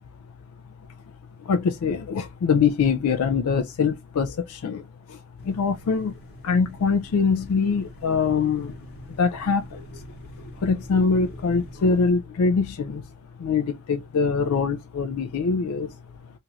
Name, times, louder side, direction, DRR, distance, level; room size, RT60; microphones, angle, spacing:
voice 1, 1.5-6.1 6.4-8.8 9.1-10.0 10.4-13.0 13.4-16.0, left 5 dB, 85° left, 0.4 m, -24 dB
sound 1, 5.4-12.1, equal, 50° left, 1.0 m, -44 dB
2.7 x 2.3 x 2.9 m
head